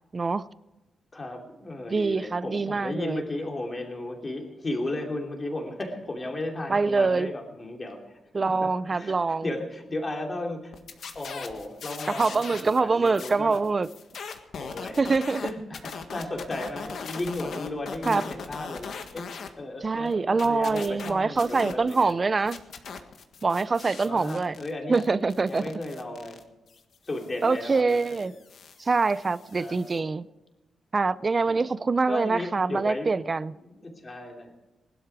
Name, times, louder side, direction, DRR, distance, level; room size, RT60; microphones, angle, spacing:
voice 1, 0.1-0.5 1.9-3.2 6.7-7.3 8.3-9.5 12.2-13.9 15.0-15.4 18.1-18.2 19.8-22.6 23.4-24.6 24.9-25.6 27.4-28.3 28.8-30.3 30.9-33.5, right 4 dB, 30° right, 0.5 m, -25 dB
voice 2, 1.1-9.2 9.4-10.7 11.1-13.7 14.6-15.0 15.4-19.3 19.6-22.2 24.0-25.0 25.5-26.4 27.0-28.3 29.6-30.1 31.4-31.6 32.1-33.1 33.6-34.5, left 2 dB, 25° left, 2.9 m, -35 dB
sound 1, 10.7-12.8 13.0-19.5 19.8-22.1 22.4-30.0, left 6 dB, 65° left, 1.6 m, -40 dB
20.5 x 12.0 x 4.8 m
wide cardioid pair, 155°, 0 cm